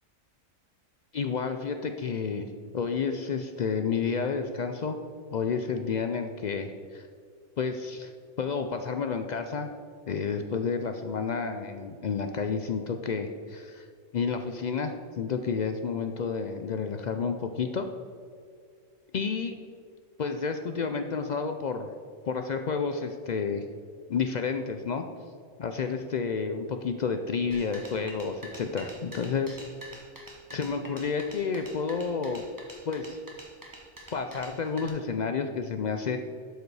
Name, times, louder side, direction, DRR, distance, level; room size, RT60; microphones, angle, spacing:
voice 1, 1.1-2.5 2.7-5.0 5.3-7.1 7.6-8.1 8.4-9.7 10.1-13.9 14.1-17.9 19.1-19.6 20.2-21.9 22.3-23.6 24.1-25.0 25.6-29.6 30.5-32.4 32.9-33.2 34.1-36.2, left 5 dB, 75° left, 6 dB, 0.4 m, -30 dB
sound 1, 27.5-34.9, right 1 dB, 15° right, 1.1 m, -46 dB
12.0 x 5.1 x 4.7 m, 2.2 s
omnidirectional pair, 1.4 m